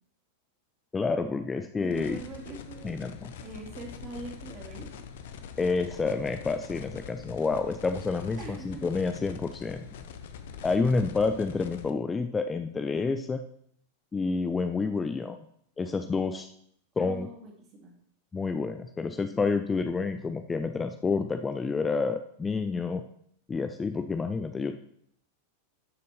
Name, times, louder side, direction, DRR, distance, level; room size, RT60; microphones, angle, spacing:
voice 1, 0.9-2.2 2.8-3.3 5.6-9.8 10.6-13.4 14.1-15.4 15.8-16.5 17.0-17.3 18.3-23.0 23.5-24.8, left 4 dB, 15° left, 8 dB, 0.5 m, -29 dB
voice 2, 1.8-4.9 8.4-8.9 17.0-17.9, right 3 dB, 35° right, 0 dB, 2.6 m, -43 dB
sound 1, 1.9-11.9, left 7 dB, 55° left, 0.7 m, -44 dB
11.5 x 6.7 x 3.4 m, 0.66 s
figure-of-eight pair, 90°, 0 cm